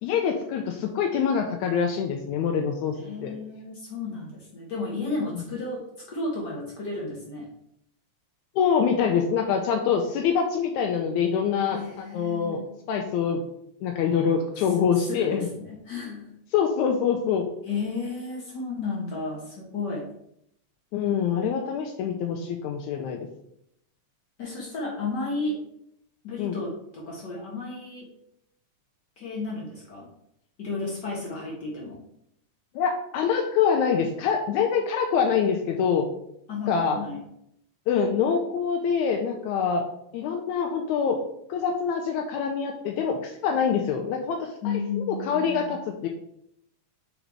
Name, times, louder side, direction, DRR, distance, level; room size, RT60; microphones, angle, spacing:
voice 1, 0.0-3.4 8.6-12.6 12.9-13.4 13.8-15.5 16.5-17.5 20.9-23.3 26.4-26.5 32.8-36.1 36.7-37.0 37.9-39.9 40.1-41.2 41.5-46.1, left 7 dB, 85° left, 2 dB, 1.9 m, -25 dB
voice 2, 2.9-5.8 6.1-7.5 11.7-12.7 14.5-14.7 15.0-16.3 17.6-20.0 24.4-25.5 26.2-28.1 29.2-30.1 30.6-32.0 36.5-37.2 44.6-45.8, left 3 dB, 70° left, -3 dB, 1.0 m, -33 dB
5.0 x 4.1 x 4.5 m, 0.75 s
omnidirectional pair, 3.4 m